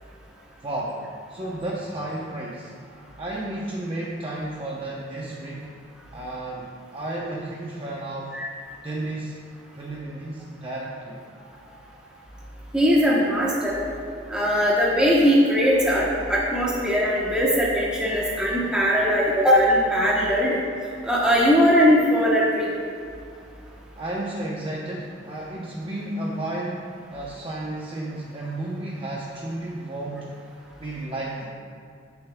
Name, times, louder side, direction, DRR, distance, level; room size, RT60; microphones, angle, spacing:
voice 1, 0.6-2.7 3.2-5.7 6.1-8.4 8.8-9.4 9.8-11.2 24.0-30.3 30.8-31.5, right 1 dB, 30° right, -5 dB, 0.8 m, -32 dB
voice 2, 12.7-13.9 14.3-20.6 21.0-22.7, equal, 5° right, -6 dB, 1.0 m, -20 dB
17.0 x 7.0 x 2.3 m, 2.4 s
head